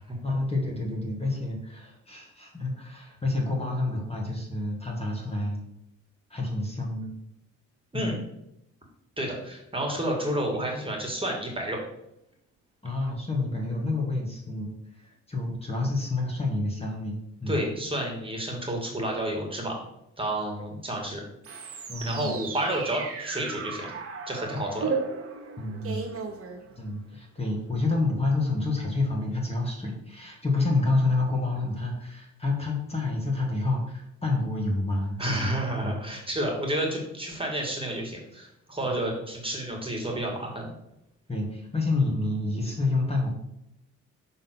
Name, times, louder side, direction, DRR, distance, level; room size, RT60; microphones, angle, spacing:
voice 1, 0.2-5.6 6.3-7.1 7.9-8.1 12.8-17.6 21.9-22.4 25.6-26.1 26.8-36.0 38.8-38.9 41.3-43.3, left 2 dB, 20° left, -1 dB, 1.8 m, -28 dB
voice 2, 9.2-11.8 17.5-19.7 20.2-21.2 22.1-24.0 24.3-24.9 35.2-40.7, right 1 dB, 15° right, 0 dB, 2.0 m, -30 dB
sound 1, 21.4-27.1, right 5 dB, 45° right, 1.3 m, -35 dB
6.3 x 3.9 x 6.0 m, 0.83 s
cardioid pair, 90°, 30 cm